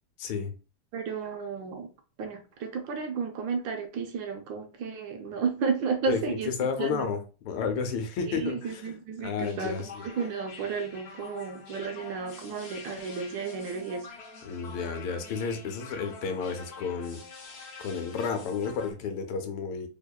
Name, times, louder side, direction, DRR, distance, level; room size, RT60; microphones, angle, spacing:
voice 1, 0.2-0.5 6.1-8.8 9.2-10.0 14.4-17.2 17.8-19.9, left 5 dB, 80° left, 1.5 m, -32 dB
voice 2, 0.9-1.9 2.2-6.5 6.8-7.0 8.3-14.1, right 5 dB, 75° right, 1.3 m, -33 dB
sound 1, 9.4-18.9, left 5 dB, 60° left, 1.1 m, -46 dB
3.5 x 3.4 x 2.3 m
omnidirectional pair, 2.3 m